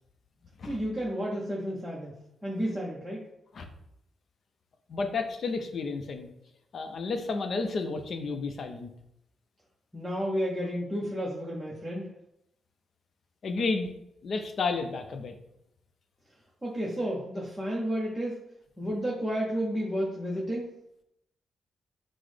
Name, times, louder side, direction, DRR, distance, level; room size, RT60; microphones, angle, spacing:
voice 1, 0.6-2.1 2.4-3.2 9.9-12.1 16.6-18.4 18.8-20.7, equal, 5° right, -5 dB, 0.6 m, -31 dB
voice 2, 4.9-6.3 6.7-8.9 13.4-13.9 14.2-15.3, left 4 dB, 50° left, 6 dB, 0.5 m, -31 dB
5.8 x 2.0 x 3.2 m, 0.80 s
cardioid pair, 130°, 0 cm